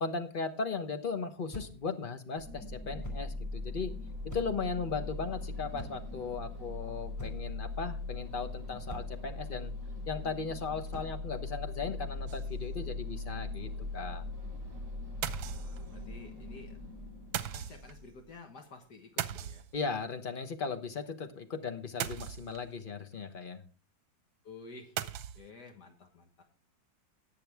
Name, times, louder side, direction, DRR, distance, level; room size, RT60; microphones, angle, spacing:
voice 1, 0.0-3.9 4.3-9.7 10.1-14.2 19.7-23.6, left 4 dB, 35° left, 7 dB, 1.0 m, -37 dB
sound 1, 1.5-1.9 3.0-3.3 4.3-4.7 5.8-6.2 7.2-7.6 8.9-9.3 10.9-11.2, right 1 dB, 10° left, 2.4 m, -45 dB
sound 2, 2.4-18.3, left 2 dB, 20° right, 2.8 m, -40 dB
sound 3, 12.3-12.8 13.2-13.3 13.5-13.6 15.2-16.1 17.3-18.0 19.2-20.1 22.0-22.8 25.0-25.5, right 11 dB, 90° right, 1.5 m, -38 dB
voice 2, 15.3-16.8 17.5-19.6 24.4-25.1 25.3-26.4, left 3 dB, 60° left, 4 dB, 1.9 m, -51 dB
18.5 x 6.9 x 3.5 m, 0.35 s
omnidirectional pair, 2.1 m